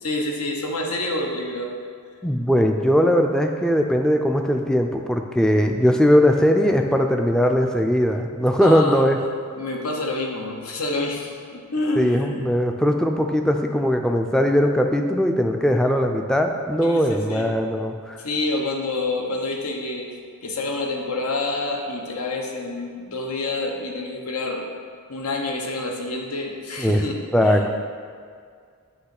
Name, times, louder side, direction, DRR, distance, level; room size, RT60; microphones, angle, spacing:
voice 1, 0.0-1.8 8.6-9.1 9.5-12.4 16.7-17.5 18.2-20.1 20.4-24.6 25.1-27.6, left 2 dB, 80° left, 1 dB, 0.9 m, -28 dB
voice 2, 2.2-9.2 12.0-18.2 26.8-27.0 27.3-27.8, equal, 5° left, 4 dB, 0.3 m, -20 dB
8.0 x 3.1 x 5.9 m, 2.1 s
head